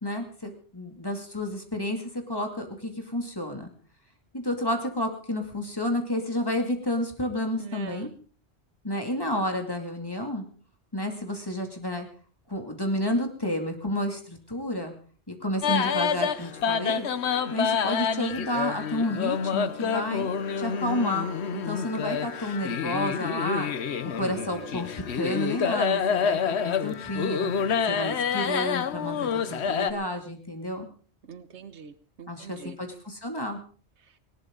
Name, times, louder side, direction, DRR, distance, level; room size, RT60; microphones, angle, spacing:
voice 1, 0.0-3.7 4.3-8.1 8.8-10.4 10.9-12.1 12.5-14.9 15.3-17.1 17.5-20.3 20.6-23.7 24.1-27.5 27.8-30.9 32.3-33.6, left 1 dB, 20° left, 4 dB, 2.5 m, -30 dB
voice 2, 7.6-8.1 31.2-32.8 34.0-34.2, right 6 dB, 90° right, 12 dB, 1.4 m, -43 dB
sound 1, 15.6-29.9, left 6 dB, 75° left, 1.2 m, -28 dB
19.0 x 18.0 x 3.9 m, 0.42 s
omnidirectional pair, 1.1 m